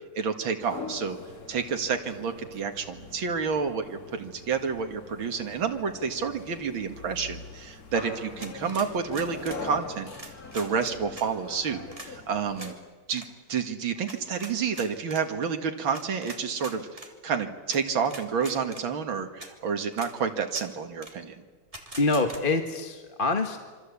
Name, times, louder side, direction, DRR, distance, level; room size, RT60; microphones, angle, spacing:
voice 1, 0.2-1.2 1.5-10.1 10.5-12.7 13.1-21.4, right 6 dB, 80° right, 6 dB, 2.7 m, -29 dB
sound 1, 0.6-12.7, left 3 dB, 45° left, 2.9 m, -43 dB
sound 2, 8.4-9.6 10.1-11.3 11.9-12.1 12.6-12.7 13.1-13.3 14.1-15.2 15.9-17.1 17.7-17.8 18.1-18.8 19.4-19.5 19.9-20.1 20.5-20.7 21.0-21.1 21.7-22.4, right 1 dB, 15° right, 3.0 m, -43 dB
voice 2, 22.0-23.6, left 3 dB, 30° left, 5 dB, 1.6 m, -25 dB
26.5 x 25.5 x 8.4 m, 1.4 s
omnidirectional pair, 2.2 m